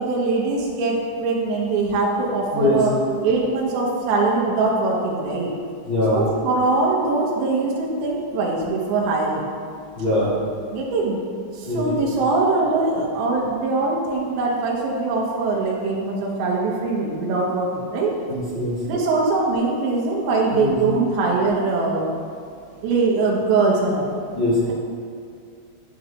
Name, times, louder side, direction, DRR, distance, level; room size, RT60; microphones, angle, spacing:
voice 1, 0.0-3.0 3.2-5.5 6.1-9.5 10.7-11.2 11.5-18.2 18.8-22.1 22.8-24.1, right 3 dB, 85° right, -3 dB, 4.0 m, -22 dB
voice 2, 5.9-6.2 10.0-10.3 11.6-11.8 18.3-18.8 20.5-20.7 24.3-24.6, left 2 dB, 40° left, -11 dB, 1.9 m, -22 dB
12.5 x 8.3 x 3.0 m, 2.3 s
omnidirectional pair, 5.8 m